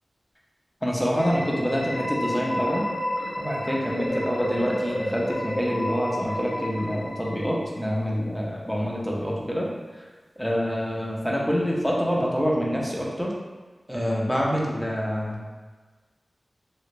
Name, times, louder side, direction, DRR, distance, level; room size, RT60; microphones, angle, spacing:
voice 1, 0.8-2.9 3.4-9.7 10.4-13.3 13.9-15.4, equal, ahead, -4 dB, 0.7 m, -26 dB
sound 1, 1.1-7.9, left 1 dB, 50° left, 0.8 m, -31 dB
3.2 x 2.4 x 3.0 m, 1.4 s
wide cardioid pair, 55°, 0 cm